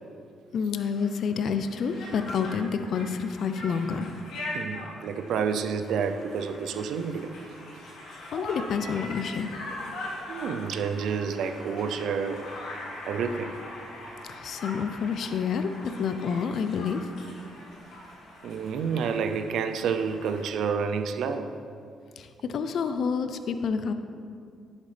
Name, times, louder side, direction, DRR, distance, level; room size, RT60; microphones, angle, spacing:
voice 1, 0.5-4.1 8.3-9.6 14.3-17.1 22.2-23.9, left 6 dB, 65° left, 9 dB, 0.5 m, -29 dB
Conversation, 0.9-20.5, left 1 dB, 80° left, 2.2 m, -41 dB
voice 2, 4.5-7.3 10.3-12.5 13.1-13.6 18.4-21.5, right 6 dB, 75° right, 9 dB, 0.6 m, -29 dB
11.0 x 7.3 x 3.3 m, 2.3 s
cardioid pair, 90°, 0 cm